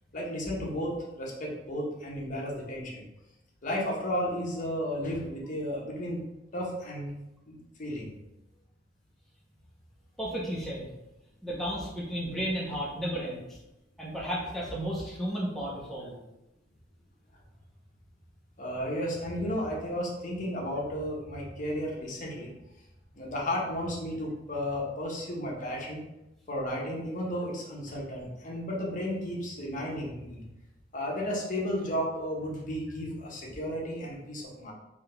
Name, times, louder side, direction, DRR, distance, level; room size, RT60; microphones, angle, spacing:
voice 1, 0.1-3.0 3.6-6.2 6.5-7.1 7.5-8.1 18.6-22.5 23.1-26.0 26.5-30.4 30.9-34.7, equal, 45° left, -3 dB, 1.0 m, -33 dB
voice 2, 10.2-10.9 11.4-13.6 14.0-16.1, equal, ahead, -6 dB, 0.6 m, -33 dB
3.7 x 2.8 x 3.4 m, 0.94 s
head